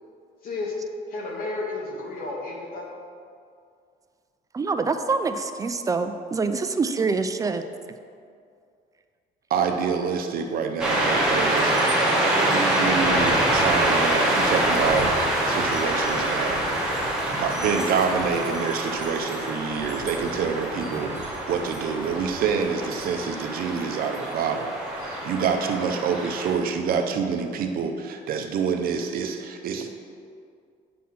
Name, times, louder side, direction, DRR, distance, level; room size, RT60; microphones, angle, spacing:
voice 1, 0.4-0.7 1.1-2.9, left 3 dB, 60° left, -1 dB, 1.5 m, -32 dB
voice 2, 4.5-7.6, right 4 dB, 20° right, 8 dB, 0.4 m, -25 dB
voice 3, 9.5-16.6 17.3-29.9, right 6 dB, 60° right, 5 dB, 0.7 m, -27 dB
sound 1, 10.8-26.5, right 1 dB, 5° right, 1.5 m, -25 dB
8.5 x 4.2 x 5.8 m, 2.3 s
cardioid pair, 140°, 17 cm